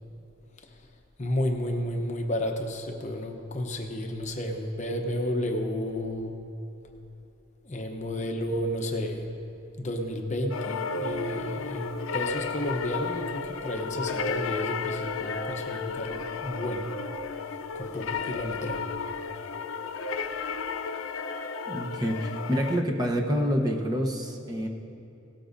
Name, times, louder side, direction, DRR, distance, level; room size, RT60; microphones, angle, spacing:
voice 1, 1.2-6.4 7.6-9.3 9.8-16.9 17.7-18.9, left 1 dB, 35° left, 3 dB, 0.8 m, -32 dB
sound 1, 10.5-22.8, left 5 dB, 70° left, 0.5 m, -33 dB
voice 2, 21.7-24.7, equal, 20° right, 0 dB, 0.9 m, -27 dB
17.5 x 13.0 x 2.6 m, 2.8 s
head